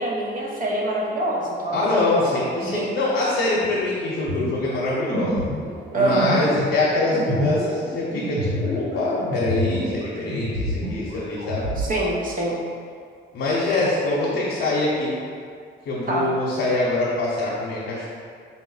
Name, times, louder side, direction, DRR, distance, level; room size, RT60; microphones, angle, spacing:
voice 1, 0.0-3.0 5.9-6.3 11.8-12.6 16.1-16.3, right 1 dB, 45° right, -3 dB, 0.8 m, -25 dB
voice 2, 1.7-5.4 5.9-11.7 13.3-15.2 15.8-18.1, left 2 dB, 65° left, -7 dB, 0.8 m, -24 dB
sound 1, 4.3-10.0 10.3-11.9, equal, 85° right, 0.9 m, -27 dB
4.2 x 2.0 x 3.9 m, 2.2 s
cardioid pair, 90°, 20 cm